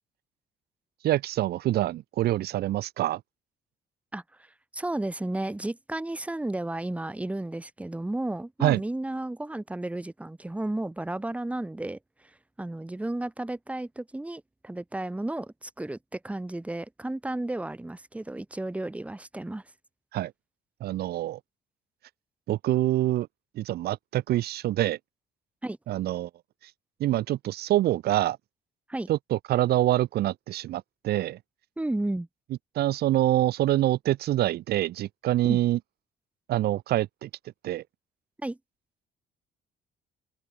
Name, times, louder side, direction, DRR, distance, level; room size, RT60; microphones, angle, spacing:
voice 1, 1.0-3.2 8.6-8.8 20.1-20.3 20.8-21.4 22.5-23.3 23.5-25.0 25.9-26.3 27.0-28.4 29.1-31.4 32.7-35.8 36.5-37.3 37.6-37.8, right 14 dB, 70° right, 1.4 m, -25 dB
voice 2, 4.1-4.5 4.7-12.0 12.6-19.6 25.6-25.8 28.9-29.1 31.8-32.3 35.4-35.6 38.4-38.6, right 1 dB, 10° right, 1.8 m, -33 dB
open air
cardioid pair, 110°, 17 cm